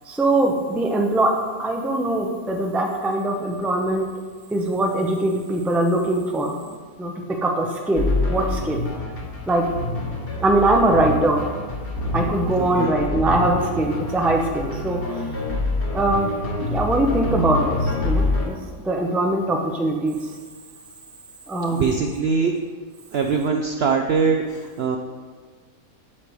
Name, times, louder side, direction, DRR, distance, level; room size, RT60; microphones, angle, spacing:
voice 1, 0.1-1.3 1.6-4.1 4.5-7.1 7.4-8.8 9.5-9.7 10.4-11.4 12.1-15.2 15.9-16.3 16.6-18.6 18.8-20.2 21.5-21.9, right 2 dB, ahead, 1 dB, 0.3 m, -22 dB
sound 1, 8.0-18.5, left 2 dB, 40° left, 1.3 m, -26 dB
voice 2, 12.6-12.9 21.7-22.5 23.1-25.0, right 5 dB, 70° right, 4 dB, 0.6 m, -22 dB
8.7 x 6.6 x 3.1 m, 1.5 s
omnidirectional pair, 1.6 m